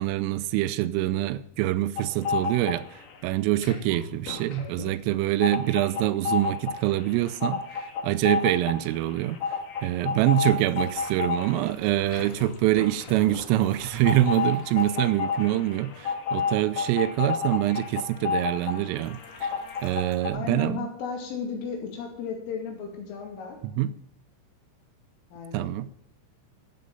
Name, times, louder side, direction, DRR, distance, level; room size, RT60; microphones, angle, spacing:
voice 1, 0.0-2.9 3.2-9.4 9.8-19.5 19.8-20.9 23.6-23.9 25.5-25.9, right 14 dB, 90° right, 3.2 m, -25 dB
sound 1, 2.0-3.2 3.5-20.3, left 6 dB, 65° left, 2.3 m, -31 dB
voice 2, 20.3-23.6 25.3-25.7, left 6 dB, 80° left, 4.9 m, -34 dB
12.5 x 8.6 x 5.4 m
omnidirectional pair, 5.7 m